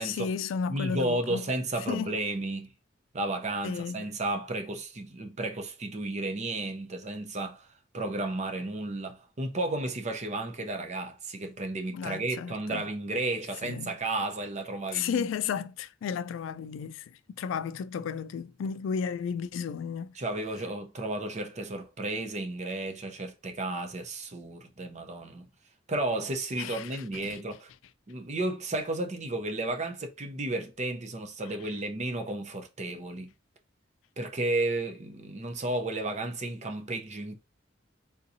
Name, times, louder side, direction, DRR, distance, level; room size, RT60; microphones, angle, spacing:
voice 1, 0.0-1.5 1.9-2.2 3.6-4.0 11.9-12.9 13.6-13.9 14.9-20.2 26.6-27.4, left 6 dB, 85° left, 0.3 m, -33 dB
voice 2, 0.7-2.7 3.1-7.7 7.9-15.3 20.2-25.5 25.9-27.7 28.1-33.3 34.2-37.4, right 2 dB, 40° right, 0.6 m, -33 dB
3.7 x 2.7 x 2.7 m
head